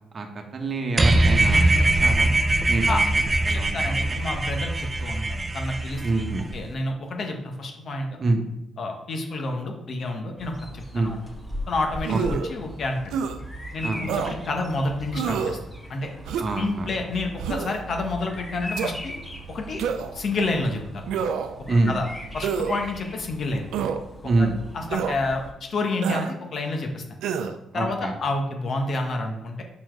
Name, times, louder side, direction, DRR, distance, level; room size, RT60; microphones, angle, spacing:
voice 1, 0.5-1.7 2.0-2.3 2.7-3.0 3.5-4.2 6.0-6.5 8.2-8.4 10.9-11.1 12.1-12.2 13.8-14.0 16.4-16.9 21.7-21.9 24.2-24.5 27.7-28.1, right 3 dB, 40° right, 4 dB, 1.2 m, -25 dB
sound 1, 1.0-6.6, right 2 dB, 25° right, 0.6 m, -22 dB
voice 2, 3.5-6.2 6.5-8.1 8.8-11.2 11.7-13.1 13.7-15.6 15.9-16.1 16.5-19.1 19.5-19.8 20.1-21.1 21.9-22.0 22.3-23.7 24.4-27.0 27.7-29.6, left 2 dB, 50° left, 3 dB, 1.4 m, -29 dB
Bird vocalization bird call bird song, 10.4-25.5, equal, 10° left, 2.0 m, -39 dB
sound 2, 12.0-12.5 13.1-13.4 14.1-14.3 15.1-15.6 16.3-16.6 17.4-17.8 18.8-18.9 19.8-20.2 21.1-21.6 22.4-22.8 23.7-24.0 24.9-25.2 26.0-26.3 27.2-27.6, right 7 dB, 85° right, 0.5 m, -27 dB
5.9 x 4.5 x 4.7 m, 0.91 s
cardioid pair, 90°, 0 cm